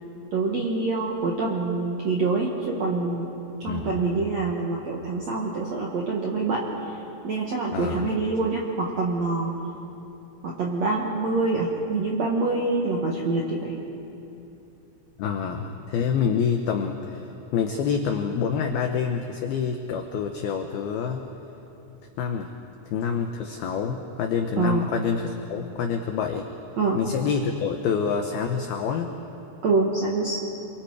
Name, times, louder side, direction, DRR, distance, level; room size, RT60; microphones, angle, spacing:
voice 1, 0.3-3.3 3.6-7.0 7.2-9.5 10.4-13.7 24.6-24.9 26.8-27.0 29.6-30.4, right 3 dB, 65° right, -2 dB, 1.7 m, -25 dB
voice 2, 3.7-4.0 7.7-8.1 15.2-21.3 22.2-22.5 22.9-26.5 26.9-29.2, left 6 dB, 85° left, 4 dB, 2.1 m, -27 dB
29.0 x 23.5 x 4.8 m, 2.9 s
omnidirectional pair, 5.7 m